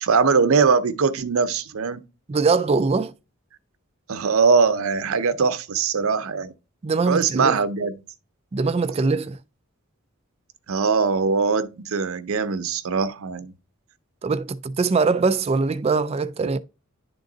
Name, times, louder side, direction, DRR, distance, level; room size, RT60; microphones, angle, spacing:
voice 1, 0.0-2.0 4.1-6.5 7.1-7.9 10.7-13.5, right 5 dB, 75° right, 0.6 m, -21 dB
voice 2, 2.3-3.1 6.8-7.5 8.5-9.4 14.2-16.6, right 4 dB, 30° right, 0.3 m, -22 dB
10.5 x 3.7 x 3.8 m
head